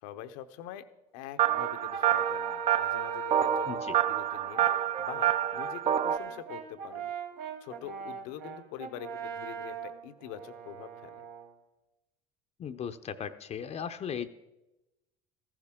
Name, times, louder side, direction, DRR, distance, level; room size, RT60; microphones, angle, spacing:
voice 1, 0.0-0.9 1.1-7.1 7.6-11.2, left 11 dB, 80° left, 10 dB, 0.8 m, -45 dB
sound 1, 1.4-6.2, right 10 dB, 35° right, 0.6 m, -28 dB
Brass instrument, 1.4-3.9 4.5-11.5, right 6 dB, 70° right, 1.4 m, -40 dB
voice 2, 3.7-4.0 12.6-14.3, left 7 dB, 40° left, 8 dB, 0.6 m, -37 dB
14.5 x 12.0 x 3.7 m, 0.98 s
supercardioid pair, 90°, 17 cm